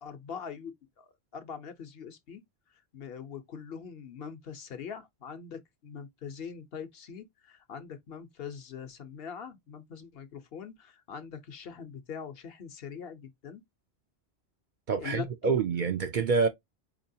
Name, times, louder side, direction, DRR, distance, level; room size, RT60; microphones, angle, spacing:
voice 1, 0.0-2.4 2.7-13.6 15.0-15.6, left 7 dB, 65° left, 0.9 m, -43 dB
voice 2, 14.9-16.5, right 5 dB, 55° right, 0.6 m, -27 dB
4.5 x 2.9 x 2.6 m
omnidirectional pair, 1.1 m